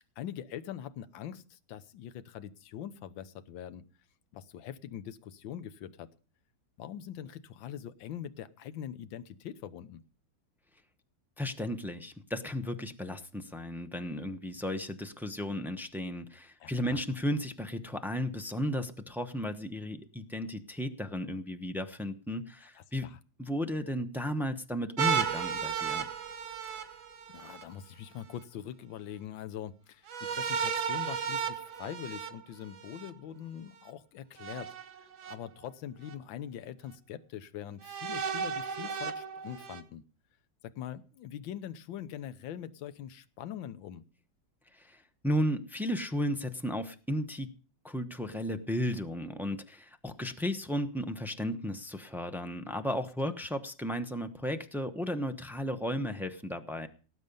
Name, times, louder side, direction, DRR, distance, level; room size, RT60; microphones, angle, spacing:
voice 1, 0.2-3.8 4.3-6.1 6.8-10.0 16.6-17.0 22.7-23.2 26.7-27.0 27.3-34.7 35.3-40.0 40.6-44.0, left 10 dB, 80° left, 12 dB, 1.6 m, -43 dB
voice 2, 11.4-23.1 23.4-26.0 44.7-47.5 47.8-56.9, equal, ahead, 7 dB, 0.4 m, -34 dB
sound 1, 25.0-27.6 30.1-33.1 34.4-35.3 36.1-36.2 37.8-39.8, right 7 dB, 80° right, 2.2 m, -34 dB
18.5 x 8.3 x 5.4 m, 0.38 s
omnidirectional pair, 2.1 m